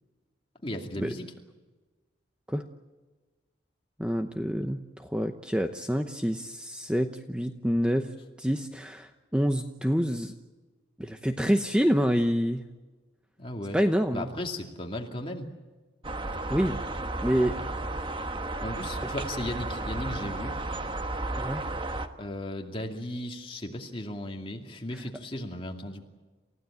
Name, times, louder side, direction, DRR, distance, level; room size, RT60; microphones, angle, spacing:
voice 1, 0.6-1.3 13.4-13.8 14.1-15.5 18.6-20.6 22.2-26.1, left 1 dB, 30° left, 2 dB, 2.4 m, -36 dB
voice 2, 4.0-8.1 8.4-10.3 11.0-12.6 13.7-14.3 16.5-16.8 17.2-17.6 21.4-21.6 24.9-25.0, equal, 5° right, 6 dB, 0.8 m, -27 dB
sound 1, 16.0-22.1, right 2 dB, 25° right, 1.2 m, -33 dB
29.0 x 15.5 x 8.9 m, 1.2 s
head